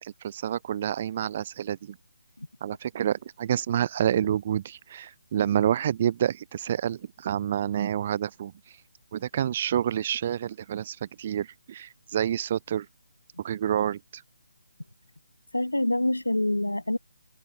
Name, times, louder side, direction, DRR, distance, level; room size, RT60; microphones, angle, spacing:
voice 1, 0.0-2.0 2.6-8.5 9.1-12.9 13.4-14.2, right 10 dB, 30° right, 0.6 m, -28 dB
voice 2, 15.5-17.0, left 1 dB, 80° left, 1.4 m, -26 dB
figure-of-eight pair, 145°, 0 cm